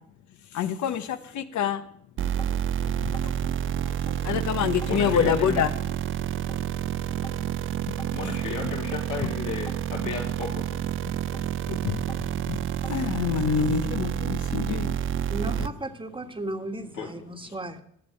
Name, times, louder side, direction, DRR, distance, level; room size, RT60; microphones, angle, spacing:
voice 1, 0.5-1.8 2.8-3.3 3.6-3.7 4.2-5.7 7.9-8.0 11.7-12.0 12.4-12.6 12.9-15.0, left 8 dB, 70° left, 10 dB, 1.0 m, -26 dB
sound 1, 2.2-2.6 3.1-4.2 4.7-5.1 5.6-6.6 7.1-7.5 8.0-9.0 9.5-9.9 10.4-11.5 11.9-12.3 12.8-13.3, left 2 dB, 15° left, 1.6 m, -45 dB
sound 2, 2.2-15.7, right 10 dB, 45° right, 0.4 m, -29 dB
voice 2, 4.8-5.6 8.1-10.7 17.0-17.1, left 5 dB, 85° left, 0 dB, 3.1 m, -34 dB
voice 3, 15.3-17.8, right 2 dB, 15° right, 7 dB, 1.4 m, -35 dB
11.5 x 7.1 x 7.6 m, 0.68 s
cardioid pair, 90°, 30 cm